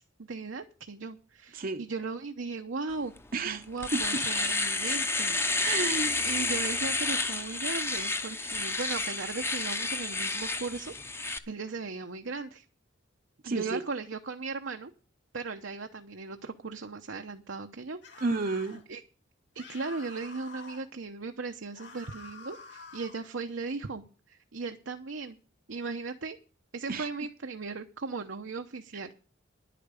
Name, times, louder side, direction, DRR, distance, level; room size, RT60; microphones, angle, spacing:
voice 1, 0.0-3.1 3.4-6.0 6.2-12.6 13.4-14.9 15.3-18.0 18.9-19.0 19.5-25.4 25.7-26.4 26.7-29.1, right 4 dB, 75° right, 0.9 m, -37 dB
Domestic sounds home sounds, 3.2-3.3 3.6-11.4, left 3 dB, 15° left, 0.8 m, -30 dB
voice 2, 3.3-3.6 3.9-4.2 5.6-6.2 13.4-13.8 18.2-18.8 26.9-27.1, right 3 dB, 45° right, 0.7 m, -31 dB
sound 1, 18.0-18.8 19.6-20.9 21.7-23.2, left 4 dB, 60° left, 3.1 m, -48 dB
10.5 x 8.5 x 7.0 m
head